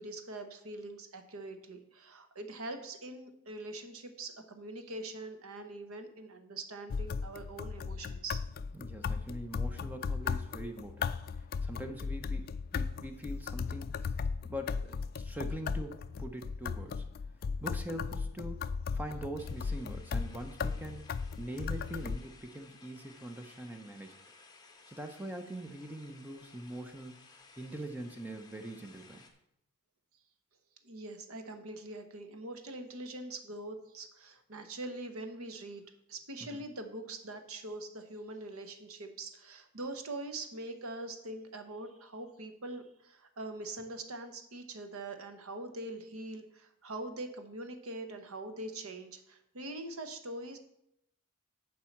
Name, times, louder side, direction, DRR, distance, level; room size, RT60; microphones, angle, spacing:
voice 1, 0.0-8.4 30.8-35.8 36.1-50.6, right 2 dB, 80° right, 8 dB, 1.0 m, -43 dB
sound 1, 6.9-22.2, left 5 dB, 45° left, 0.3 m, -36 dB
voice 2, 8.7-11.2 11.6-14.0 14.4-17.0 17.6-21.0 21.4-24.2 24.9-27.2 27.6-29.2 36.5-36.6, right 1 dB, 10° right, 5 dB, 0.6 m, -43 dB
sound 2, 19.4-29.3, left 4 dB, 20° left, 0.9 m, -58 dB
7.3 x 4.7 x 7.1 m, 0.79 s
head